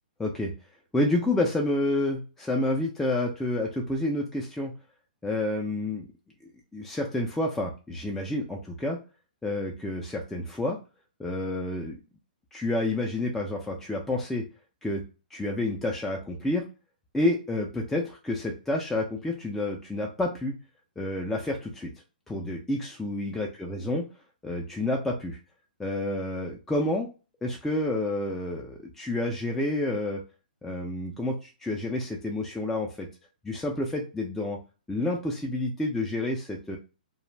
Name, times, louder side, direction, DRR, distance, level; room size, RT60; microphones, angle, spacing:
voice 1, 0.2-0.5 0.9-4.7 5.2-6.1 6.7-9.0 9.4-10.8 11.2-12.0 12.5-14.4 14.8-15.0 15.3-16.7 17.1-20.6 21.0-21.9 22.3-24.0 24.4-25.4 25.8-27.1 27.4-30.2 30.6-33.1 33.4-34.6 34.9-36.8, left 1 dB, 5° left, 0 dB, 0.3 m, -29 dB
2.4 x 2.0 x 3.1 m, 0.32 s
hypercardioid pair, 135°, 5 cm